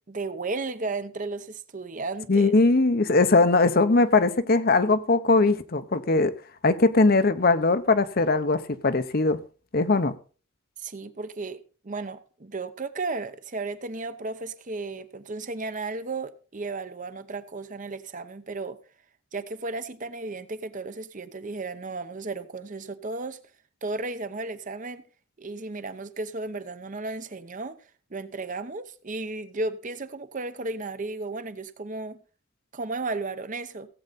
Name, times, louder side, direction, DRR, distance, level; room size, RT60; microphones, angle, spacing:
voice 1, 0.1-2.5 10.8-18.8 19.3-23.4 23.8-25.0 25.4-27.8 28.1-32.2 32.7-33.9, right 3 dB, 40° right, 0.8 m, -34 dB
voice 2, 2.3-6.3 6.6-9.4 9.7-10.1, left 3 dB, 50° left, 0.8 m, -20 dB
16.5 x 8.0 x 4.1 m
head